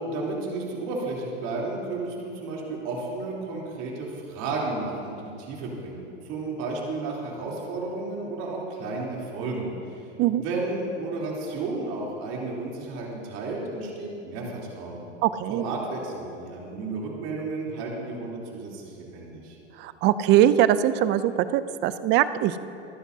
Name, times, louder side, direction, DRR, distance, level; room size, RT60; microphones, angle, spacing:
voice 1, 0.1-10.0 10.3-15.1 15.5-19.6, right 3 dB, 45° right, -3 dB, 3.5 m, -32 dB
voice 2, 15.2-15.7 19.8-22.6, right 12 dB, 30° right, 14 dB, 0.5 m, -21 dB
26.0 x 9.9 x 2.8 m, 2.7 s
hypercardioid pair, 125°, 34 cm